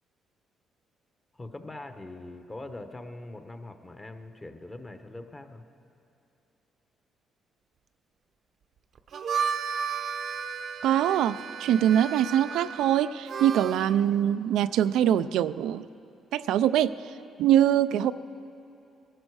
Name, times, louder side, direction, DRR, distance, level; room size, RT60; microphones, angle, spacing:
voice 1, 1.3-5.6, left 2 dB, 20° left, 7 dB, 1.0 m, -42 dB
Harmonica, 9.0-13.9, right 6 dB, 60° right, 0.7 m, -33 dB
voice 2, 10.8-15.9 16.3-16.9 17.4-18.1, right 11 dB, 85° right, 12 dB, 0.3 m, -23 dB
21.0 x 12.5 x 4.8 m, 2.7 s
cardioid pair, 90°, 0 cm